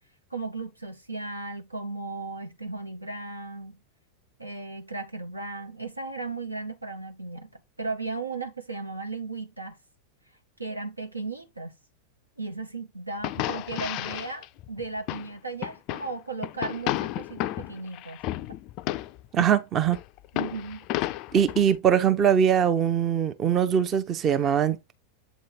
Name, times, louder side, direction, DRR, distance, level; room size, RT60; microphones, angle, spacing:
voice 1, 0.3-3.8 4.4-7.5 7.8-9.8 10.6-11.7 12.4-18.2 20.3-20.9, right 3 dB, 85° right, 1.0 m, -36 dB
sound 1, 13.2-15.3 15.6-16.1 16.4-19.5 19.9-21.7, left 15 dB, 40° left, 0.3 m, -32 dB
voice 2, 19.3-20.0 21.3-24.9, right 8 dB, 30° right, 0.6 m, -22 dB
8.0 x 3.1 x 4.1 m
figure-of-eight pair, 90°, 0 cm